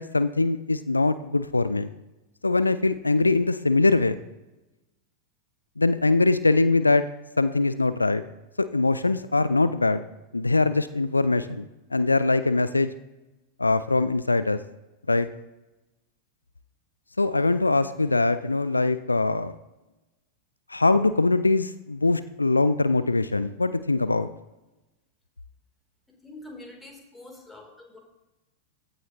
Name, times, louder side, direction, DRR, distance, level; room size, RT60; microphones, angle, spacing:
voice 1, 0.0-1.9 2.4-4.2 5.8-7.1 7.4-8.2 8.6-10.0 10.3-12.9 13.6-14.6 15.1-15.3 17.2-19.6 20.7-24.3, left 3 dB, 80° left, 13 dB, 0.3 m, -22 dB
voice 2, 26.2-28.0, left 2 dB, 10° left, 1 dB, 2.6 m, -45 dB
15.5 x 7.0 x 2.7 m, 1.0 s
figure-of-eight pair, 90°, 0 cm